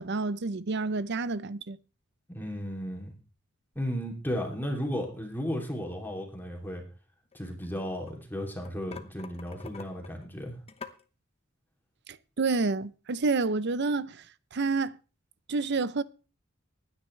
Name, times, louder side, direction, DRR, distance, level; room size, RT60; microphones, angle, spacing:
voice 1, 0.0-1.8 12.1-14.2 14.5-15.0 15.5-16.0, right 3 dB, 55° right, 0.7 m, -29 dB
voice 2, 2.3-3.1 3.7-6.8 7.3-10.5, equal, 10° left, 2.9 m, -34 dB
sound 1, 7.3-8.2 8.5-11.0, left 5 dB, 30° left, 1.0 m, -45 dB
20.5 x 9.7 x 3.3 m
head